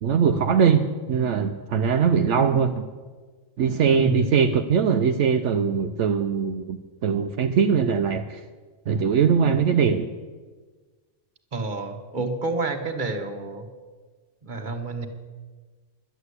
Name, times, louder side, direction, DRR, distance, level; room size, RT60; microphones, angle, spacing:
voice 1, 0.0-2.9 3.6-8.4 8.9-10.1, right 6 dB, 70° right, 7 dB, 1.0 m, -21 dB
voice 2, 4.0-4.4 11.5-13.7 14.4-15.1, right 3 dB, 40° right, 5 dB, 1.4 m, -28 dB
11.5 x 10.5 x 8.1 m, 1.4 s
omnidirectional pair, 1.3 m